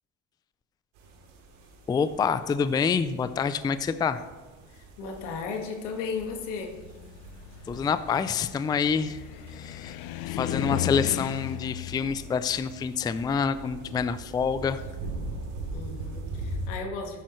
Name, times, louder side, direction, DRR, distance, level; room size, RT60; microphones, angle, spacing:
sound 1, 1.0-16.7, right 2 dB, 90° right, 3.1 m, -42 dB
voice 1, 1.9-4.2 7.7-9.2 9.5-10.0 10.3-14.8, left 6 dB, 10° left, 13 dB, 0.3 m, -27 dB
voice 2, 4.7-6.8 15.7-17.2, left 5 dB, 90° left, 3 dB, 1.8 m, -35 dB
Car, 6.7-14.9, left 13 dB, 70° left, 0.6 m, -36 dB
13.0 x 10.0 x 3.1 m, 1.3 s
supercardioid pair, 105°, 36 cm